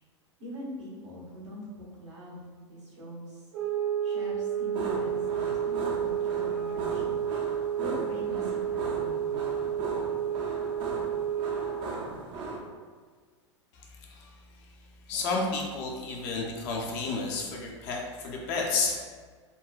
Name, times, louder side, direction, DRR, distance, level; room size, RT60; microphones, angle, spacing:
voice 1, 0.4-3.4 4.0-7.2 7.8-9.7, equal, 75° right, -5 dB, 1.1 m, -42 dB
sound 1, 3.5-11.9, right 9 dB, 50° right, 0.9 m, -31 dB
sound 2, 4.7-12.6, right 2 dB, 30° right, 0.5 m, -38 dB
voice 2, 13.7-14.7 15.1-19.1, left 3 dB, 40° left, -1 dB, 0.6 m, -32 dB
3.8 x 2.2 x 2.4 m, 1.5 s
figure-of-eight pair, 95°, 16 cm